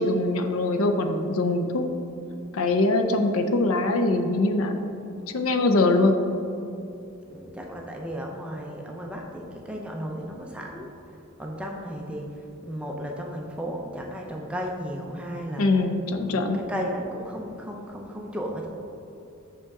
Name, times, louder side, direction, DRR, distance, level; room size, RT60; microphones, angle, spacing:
voice 1, 0.0-1.9 2.5-4.7 5.3-6.2 15.6-16.6, left 2 dB, 70° left, 6 dB, 0.5 m, -22 dB
voice 2, 7.3-10.9 11.4-15.7 16.1-18.7, equal, 5° right, 0 dB, 0.5 m, -34 dB
6.5 x 5.5 x 3.6 m, 2.8 s
head